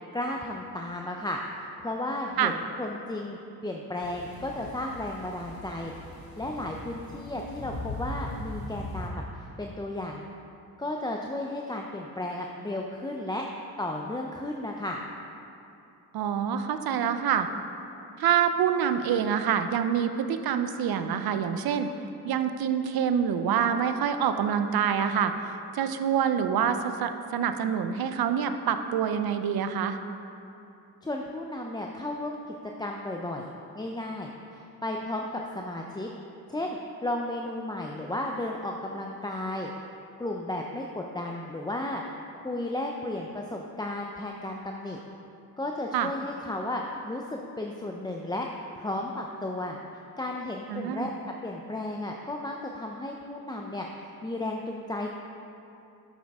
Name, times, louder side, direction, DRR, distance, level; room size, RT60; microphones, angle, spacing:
voice 1, 0.1-10.2 10.8-13.4 13.8-15.0 31.0-36.1 36.5-39.7 40.2-42.0 42.3-45.0 45.6-48.5 48.7-49.8 50.2-55.2, left 1 dB, 10° left, 0 dB, 0.5 m, -34 dB
sound 1, 4.0-9.1, left 2 dB, 65° left, 1.5 m, -40 dB
voice 2, 16.1-17.5 18.2-21.9 22.3-25.3 25.7-30.0 45.9-46.1 50.7-51.1, right 8 dB, 70° right, 8 dB, 0.7 m, -26 dB
10.0 x 7.3 x 3.6 m, 2.8 s
cardioid pair, 80°, 38 cm